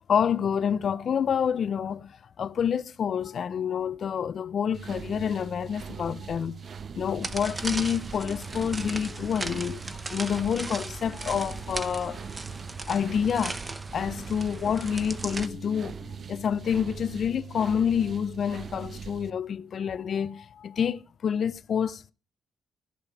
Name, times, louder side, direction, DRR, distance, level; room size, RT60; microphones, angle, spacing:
voice 1, 0.1-6.6 6.9-12.4 12.9-13.6 13.9-22.1, left 7 dB, 60° left, 0.5 m, -28 dB
sound 1, 4.7-19.3, right 6 dB, 50° right, 0.7 m, -41 dB
sound 2, 7.2-15.5, right 3 dB, 25° right, 0.9 m, -37 dB
14.5 x 4.9 x 7.3 m
cardioid pair, 105°, 0 cm